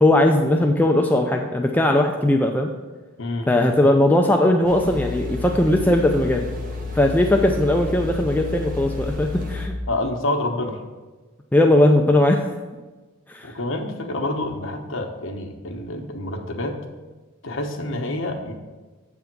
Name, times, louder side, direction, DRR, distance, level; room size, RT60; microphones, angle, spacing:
voice 1, 0.0-2.7 3.5-6.4 6.9-9.7 11.5-12.5 13.3-13.5, left 1 dB, 10° left, 3 dB, 0.3 m, -18 dB
sound 1, 4.6-9.7, left 3 dB, 40° right, 0.8 m, -31 dB
voice 2, 9.9-10.8 13.4-16.8 17.4-18.5, left 1 dB, 65° left, 2 dB, 0.9 m, -27 dB
7.8 x 3.5 x 5.9 m, 1.3 s
head